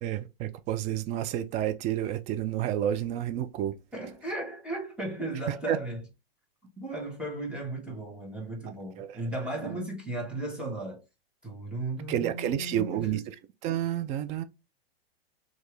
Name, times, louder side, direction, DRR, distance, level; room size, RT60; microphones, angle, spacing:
voice 1, 0.0-3.7 5.7-5.8 9.0-9.2 9.7-9.8 12.1-13.2 13.6-14.4, right 11 dB, 25° right, 0.4 m, -30 dB
voice 2, 3.9-6.0 6.8-11.0 11.4-13.2, right 2 dB, 5° right, 1.7 m, -35 dB
4.4 x 2.9 x 3.2 m
hypercardioid pair, 115°, 31 cm